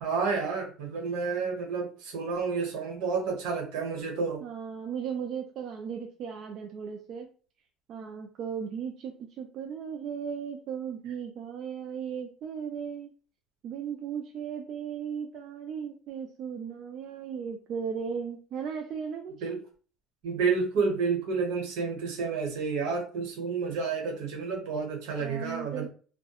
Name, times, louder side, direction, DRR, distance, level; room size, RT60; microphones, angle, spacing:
voice 1, 0.0-4.4 19.4-19.6 20.2-25.9, right 5 dB, 80° right, 1.0 m, -30 dB
voice 2, 4.4-7.3 7.9-13.1 13.6-19.5 25.2-25.9, right 7 dB, 50° right, 0.3 m, -36 dB
2.3 x 2.1 x 2.9 m
cardioid pair, 135°, 0 cm